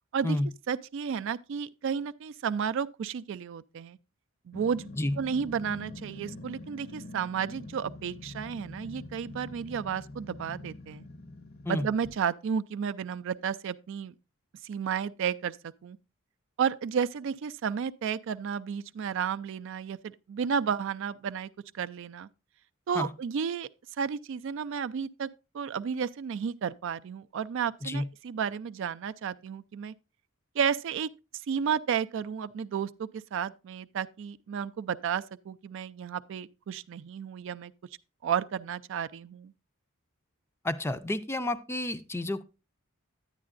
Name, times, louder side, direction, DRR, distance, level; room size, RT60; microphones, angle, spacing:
voice 1, 0.7-4.0 4.5-4.9 5.2-11.1 11.7-14.1 14.6-16.0 16.6-22.3 22.9-23.7 24.0-25.3 25.5-29.9 30.5-31.1 31.5-37.7 38.2-39.5, right 7 dB, 65° right, 0.3 m, -32 dB
Growling, 4.5-12.2, left 2 dB, 50° left, 0.6 m, -45 dB
voice 2, 40.6-42.4, left 1 dB, 10° left, 0.4 m, -30 dB
9.8 x 9.4 x 2.4 m
head